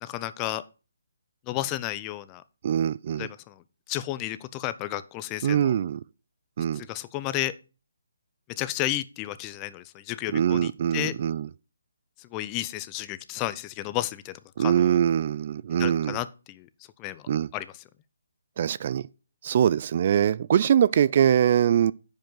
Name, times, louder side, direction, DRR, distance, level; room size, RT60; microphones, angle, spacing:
voice 1, 0.0-0.6 1.5-2.4 3.2-3.6 3.9-5.7 6.7-7.5 8.6-11.1 12.2-15.0 15.8-16.7 17.0-17.2 17.5-17.7, left 14 dB, 20° left, 0.5 m, -32 dB
voice 2, 2.6-3.3 5.4-6.0 6.6-6.8 10.3-11.5 14.6-16.2 17.3-17.5 18.6-19.1 19.4-21.9, right 9 dB, 45° right, 0.3 m, -23 dB
10.0 x 5.3 x 3.9 m
figure-of-eight pair, 150°, 0 cm